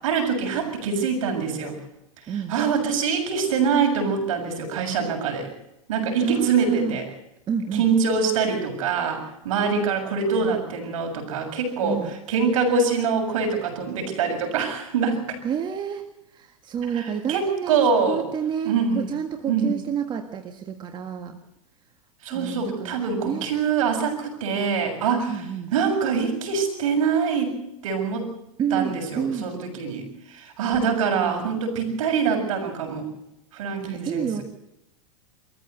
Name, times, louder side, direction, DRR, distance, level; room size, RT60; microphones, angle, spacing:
voice 1, 0.0-1.8 2.2-5.5 5.9-7.1 7.7-12.0 12.3-15.4 16.9-18.2 18.6-19.0 19.5-19.7 22.2-27.5 27.8-28.3 28.7-33.1 33.5-34.4, right 5 dB, 70° right, 4 dB, 7.1 m, -24 dB
voice 2, 6.2-7.0 7.5-7.9 10.2-10.5 11.8-12.2 15.4-16.0 16.3-21.4 22.3-23.5 25.3-25.7 28.6-29.5 30.6-30.8 31.2-31.5 33.8-34.4, right 8 dB, 25° right, 5 dB, 1.7 m, -29 dB
23.5 x 14.5 x 8.1 m, 0.86 s
supercardioid pair, 130°, 18 cm